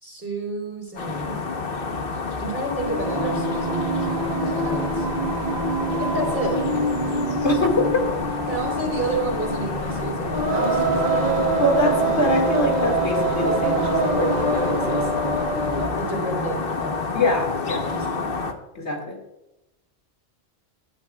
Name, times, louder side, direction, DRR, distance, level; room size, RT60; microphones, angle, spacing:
voice 1, 0.0-1.4 2.4-4.0 4.4-5.1 5.9-6.6 8.5-11.5 15.7-17.0 17.9-18.3, right 2 dB, 10° right, 0 dB, 3.8 m, -30 dB
sound 1, 1.0-18.5, left 4 dB, 55° left, 1.3 m, -29 dB
Singing, 2.8-16.0, right 2 dB, 40° right, 1.2 m, -25 dB
voice 2, 7.4-8.0 11.6-15.1 17.1-17.9 18.7-19.2, left 2 dB, 80° left, 1 dB, 2.5 m, -24 dB
17.5 x 11.5 x 2.4 m, 0.94 s
omnidirectional pair, 1.1 m